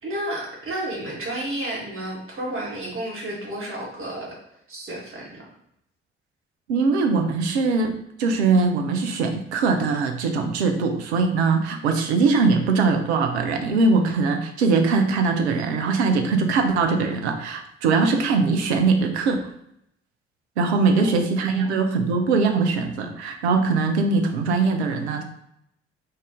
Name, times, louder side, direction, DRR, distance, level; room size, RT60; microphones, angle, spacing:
voice 1, 0.0-4.3 4.7-5.4 21.0-21.8, right 1 dB, 40° right, -3 dB, 1.4 m, -32 dB
voice 2, 6.7-7.9 8.2-19.5 20.6-25.2, right 4 dB, 75° right, 5 dB, 0.5 m, -21 dB
4.0 x 2.5 x 3.5 m, 0.75 s
figure-of-eight pair, 40°, 33 cm